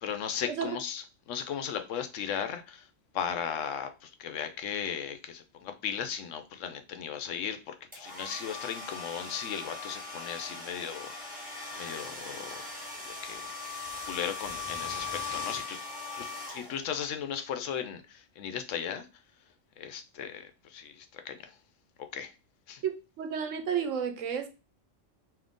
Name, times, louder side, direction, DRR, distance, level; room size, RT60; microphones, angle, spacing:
voice 1, 0.0-2.9 3.1-13.4 14.0-15.8 16.1-19.1 19.8-21.5 22.1-22.3 22.7-22.8, left 8 dB, 80° left, 1.0 m, -37 dB
sound 1, 7.9-17.1, left 4 dB, 5° right, 1.2 m, -39 dB
voice 2, 22.8-24.5, right 7 dB, 85° right, 1.1 m, -32 dB
3.8 x 2.8 x 3.6 m
omnidirectional pair, 1.3 m